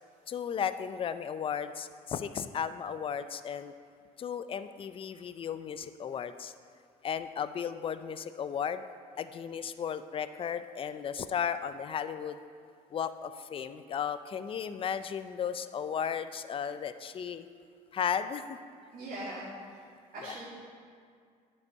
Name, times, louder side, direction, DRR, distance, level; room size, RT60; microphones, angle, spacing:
voice 1, 0.3-3.7 4.2-6.5 7.0-8.8 9.2-12.4 12.9-17.5 17.9-18.6, left 7 dB, 30° left, 12 dB, 0.4 m, -35 dB
voice 2, 18.9-19.8 20.1-20.5, right 1 dB, 55° right, -8 dB, 1.8 m, -41 dB
9.6 x 5.4 x 4.6 m, 2.1 s
cardioid pair, 110°, 17 cm